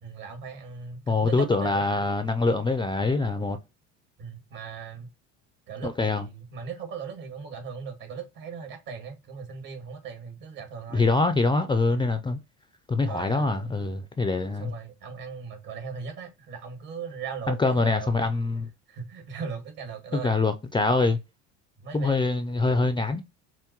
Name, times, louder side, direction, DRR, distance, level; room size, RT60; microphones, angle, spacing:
voice 1, 0.0-1.8 4.2-5.1 5.7-11.1 11.9-12.1 13.1-13.8 14.6-18.1 18.9-20.4 21.8-22.3, right 6 dB, 60° right, 2.1 m, -38 dB
voice 2, 1.1-3.6 5.8-6.2 10.9-12.4 12.9-14.7 17.5-18.7 20.1-21.2 21.9-23.2, left 3 dB, 15° left, 0.4 m, -24 dB
5.7 x 2.2 x 3.0 m
hypercardioid pair, 80°, 37 cm